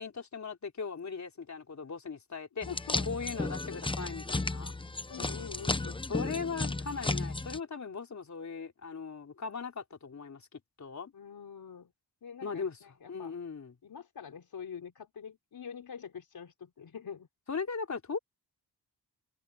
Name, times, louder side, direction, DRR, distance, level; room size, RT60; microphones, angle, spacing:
voice 1, 0.0-2.7 3.0-4.7 6.1-11.1 12.4-12.8 13.1-13.7 17.5-18.2, left 5 dB, 45° left, 4.1 m, -38 dB
sound 1, 2.6-7.6, left 2 dB, 15° left, 0.8 m, -34 dB
voice 2, 2.7-3.1 3.4-3.8 5.1-6.0 11.1-11.9 12.2-13.4 13.8-17.3, left 7 dB, 65° left, 4.0 m, -45 dB
wide cardioid pair, 130°, 40 cm